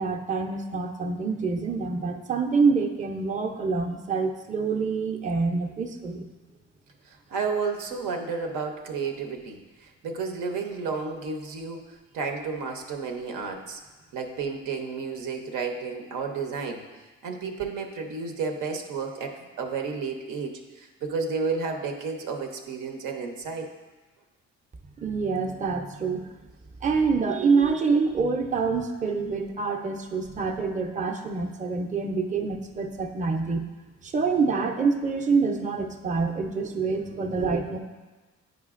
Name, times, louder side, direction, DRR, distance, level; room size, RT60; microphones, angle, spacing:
voice 1, 0.0-6.3 25.0-26.3 26.8-33.7 34.0-37.8, right 4 dB, 25° right, 2 dB, 0.6 m, -26 dB
voice 2, 7.1-13.8 14.1-16.8 17.2-23.7 36.8-37.6, right 5 dB, 85° right, 4 dB, 0.7 m, -32 dB
9.3 x 5.0 x 2.4 m, 1.2 s
cardioid pair, 90°, 30 cm